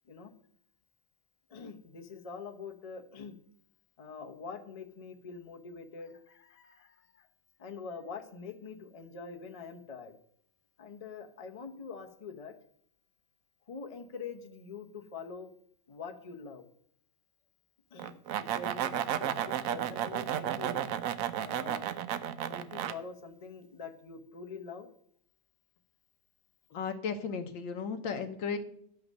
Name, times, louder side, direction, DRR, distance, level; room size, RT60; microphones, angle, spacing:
voice 1, 1.5-3.4 4.0-7.3 7.6-10.2 10.8-12.6 13.7-15.5 15.9-16.7 17.9-20.8 21.4-21.9 22.5-24.9, left 5 dB, 35° left, 5 dB, 0.6 m, -45 dB
sound 1, 18.0-22.9, right 10 dB, 70° right, 0.8 m, -33 dB
voice 2, 26.7-28.6, left 6 dB, 85° left, 7 dB, 1.7 m, -35 dB
11.5 x 5.8 x 6.5 m, 0.67 s
omnidirectional pair, 2.0 m